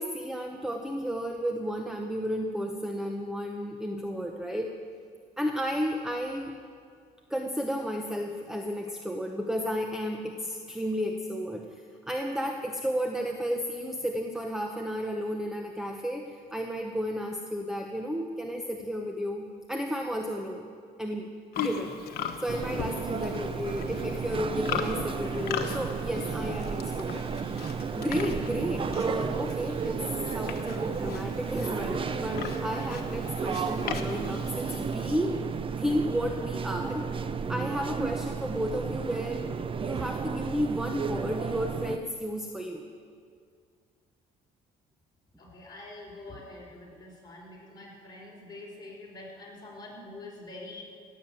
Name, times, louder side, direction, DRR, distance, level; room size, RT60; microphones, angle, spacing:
voice 1, 0.0-4.8 5.4-6.5 7.3-11.7 12.1-20.6 21.0-21.3 21.6-30.0 30.3-35.4 35.8-37.1 37.5-39.5 39.8-42.8, equal, 5° right, 3 dB, 0.9 m, -32 dB
Livestock farm animals working animals, 21.5-35.2, left 7 dB, 65° left, 1.3 m, -39 dB
sound 1, 22.5-42.0, right 6 dB, 30° right, 0.6 m, -33 dB
voice 2, 45.4-50.8, left 2 dB, 25° left, -3 dB, 4.9 m, -45 dB
17.0 x 7.5 x 9.0 m, 2.2 s
cardioid pair, 110°, 17 cm